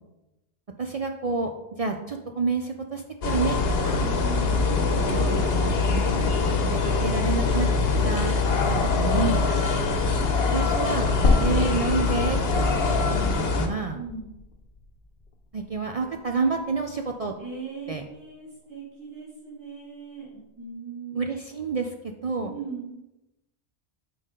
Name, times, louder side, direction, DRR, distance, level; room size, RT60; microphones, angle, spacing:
voice 1, 0.8-3.6 3.8-4.1 5.0-7.7 8.0-9.5 10.5-11.1 11.4-12.7 13.0-14.0 15.5-17.3 17.9-18.0 21.2-22.5, right 4 dB, 50° right, 4 dB, 0.4 m, -29 dB
sound 1, 3.2-13.7, left 4 dB, 70° left, 1.0 m, -23 dB
voice 2, 4.2-4.8 13.9-14.3 17.4-21.1 22.4-23.0, right 5 dB, 25° right, -9 dB, 2.5 m, -39 dB
sound 2, 11.2-15.4 15.8-15.9 17.3-17.4, left 3 dB, 50° left, 0.9 m, -28 dB
8.5 x 5.0 x 3.7 m, 0.95 s
omnidirectional pair, 1.1 m